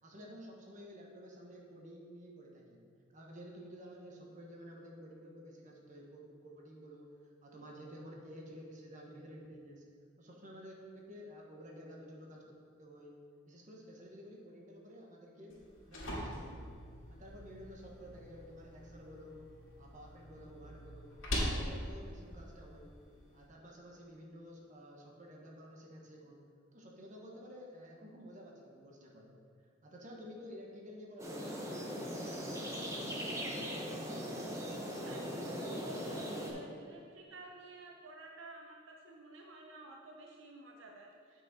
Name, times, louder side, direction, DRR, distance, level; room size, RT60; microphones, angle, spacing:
voice 1, 0.0-2.8 3.1-7.1 7.4-9.8 10.2-13.2 13.4-16.8 17.1-19.5 19.8-22.9 23.3-26.4 26.7-29.3 29.8-33.4, equal, 40° right, -1 dB, 1.2 m, -52 dB
sound 1, 15.5-23.5, equal, 85° left, 1.9 m, -42 dB
sound 2, 31.2-36.5, equal, 15° right, 1.0 m, -40 dB
voice 2, 35.0-41.4, right 2 dB, 70° right, 0 dB, 0.7 m, -52 dB
8.1 x 5.9 x 4.1 m, 2.2 s
head